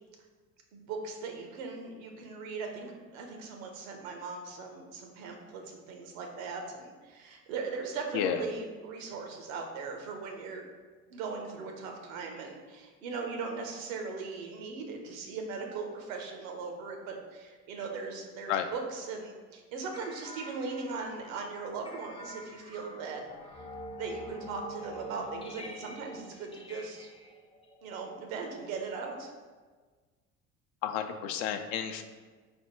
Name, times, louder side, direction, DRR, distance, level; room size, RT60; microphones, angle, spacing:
voice 1, 0.7-10.7 11.1-23.2 23.6-23.7 24.0-27.1 27.8-29.3, right 4 dB, 75° right, 3 dB, 0.7 m, -39 dB
sound 1, 19.9-28.8, equal, 15° left, 0.4 m, -47 dB
voice 2, 30.8-32.0, left 9 dB, 70° left, 7 dB, 0.5 m, -31 dB
3.4 x 2.1 x 4.3 m, 1.4 s
hypercardioid pair, 70°, 40 cm